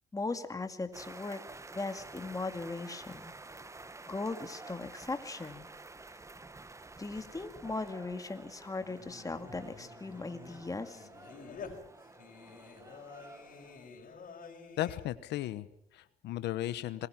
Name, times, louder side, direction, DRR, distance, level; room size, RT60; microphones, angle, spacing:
voice 1, 0.1-1.4 1.7-3.3 4.1-5.7 6.1-6.2 7.0-11.1, left 3 dB, 20° left, 8 dB, 2.1 m, -38 dB
sound 1, 0.9-13.9, right 3 dB, 15° right, 1.0 m, -50 dB
Singing, 8.8-15.0, left 5 dB, 55° left, 5.1 m, -50 dB
voice 2, 14.8-17.1, left 14 dB, 90° left, 14 dB, 1.0 m, -36 dB
27.0 x 20.5 x 5.9 m, 0.77 s
cardioid pair, 95°, 17 cm